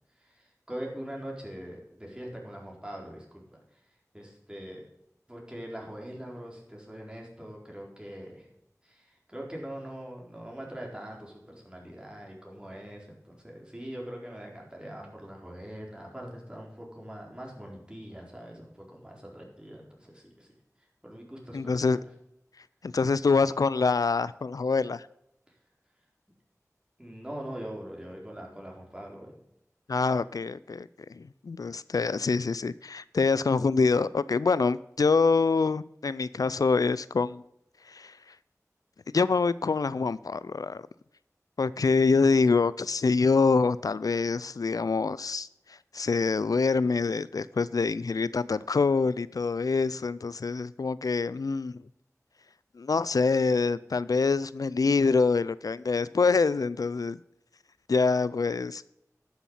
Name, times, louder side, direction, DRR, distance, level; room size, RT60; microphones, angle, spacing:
voice 1, 0.1-3.4 3.7-3.8 4.1-4.9 5.3-8.5 8.8-22.0 27.0-29.4, equal, 15° right, -1 dB, 4.2 m, -42 dB
voice 2, 21.5-22.0 22.8-25.1 29.9-37.4 37.9-38.2 39.1-40.8 41.6-51.8 52.8-57.2 57.9-58.8, left 4 dB, 85° left, 18 dB, 0.4 m, -25 dB
11.5 x 7.2 x 5.6 m, 0.80 s
wide cardioid pair, 45°, 6 cm